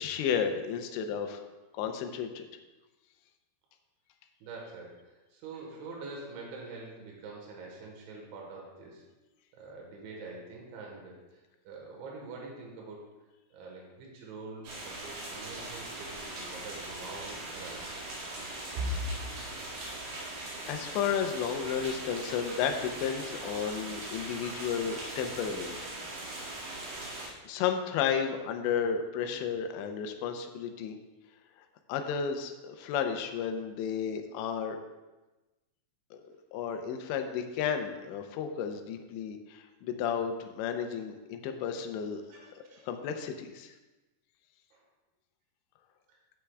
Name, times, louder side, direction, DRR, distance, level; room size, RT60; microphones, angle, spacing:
voice 1, 0.0-1.4 1.7-2.5 20.7-25.8 27.4-31.0 31.9-34.8 36.1-42.2 42.8-43.7, left 7 dB, 85° left, 6 dB, 2.9 m, -33 dB
voice 2, 4.4-9.0 9.6-11.4 11.7-13.0 13.5-17.8 18.8-19.4 21.2-21.3 28.0-28.3 42.3-42.9 44.7-44.8, right 1 dB, 85° right, -1 dB, 3.8 m, -43 dB
sound 1, 14.6-27.3, right 2 dB, 65° right, 3.9 m, -40 dB
13.5 x 8.2 x 2.3 m, 1.1 s
omnidirectional pair, 5.1 m